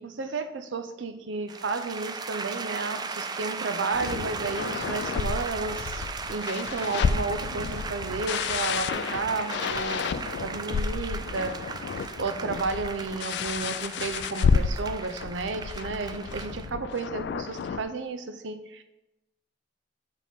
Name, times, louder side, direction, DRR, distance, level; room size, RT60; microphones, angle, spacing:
voice 1, 0.0-18.8, right 3 dB, 80° right, 9 dB, 0.6 m, -32 dB
sound 1, 1.5-16.7, right 4 dB, 20° right, 0.3 m, -37 dB
sound 2, 3.9-17.8, left 5 dB, 65° left, 0.3 m, -31 dB
7.5 x 5.5 x 3.6 m, 0.97 s
head